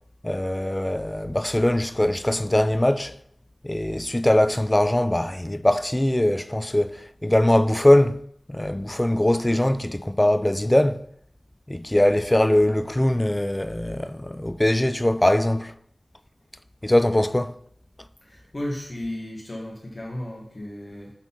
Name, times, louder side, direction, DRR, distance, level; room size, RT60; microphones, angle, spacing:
voice 1, 0.2-3.2 3.6-8.2 8.5-11.0 11.7-15.7 16.8-17.5, left 1 dB, 15° left, 0.3 m, -21 dB
voice 2, 18.2-21.1, left 1 dB, 40° left, 1.4 m, -34 dB
7.2 x 4.0 x 5.6 m
wide cardioid pair, 80°, 0 cm